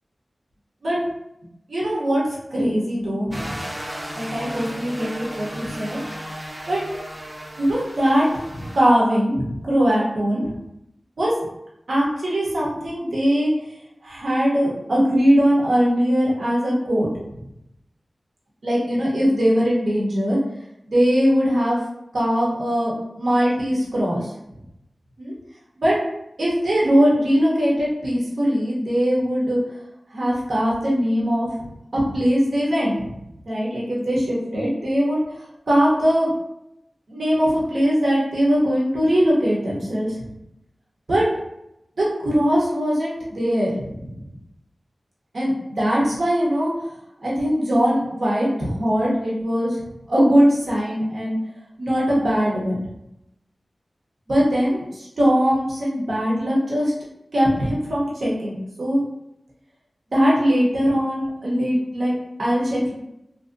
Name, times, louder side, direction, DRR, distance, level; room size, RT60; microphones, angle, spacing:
voice 1, 1.7-2.2 2.5-3.6 4.1-6.0 6.7-6.8 7.6-10.5 11.2-11.3 11.9-13.5 14.0-17.1 18.6-20.4 20.9-21.8 22.1-24.3 25.2-25.3 25.8-26.0 26.4-29.6 30.1-31.5 31.9-33.0 33.4-35.2 35.7-36.3 37.1-40.2 41.1-41.3 42.0-44.2 45.3-46.7 47.2-49.7 50.1-51.4 51.8-52.8 54.3-56.9 57.3-59.0 60.1-62.1 62.4-62.9, equal, 75° right, -5 dB, 0.9 m, -21 dB
sound 1, 3.3-8.8, equal, 20° right, 0.5 m, -35 dB
2.8 x 2.7 x 2.6 m, 0.83 s
wide cardioid pair, 70°, 0 cm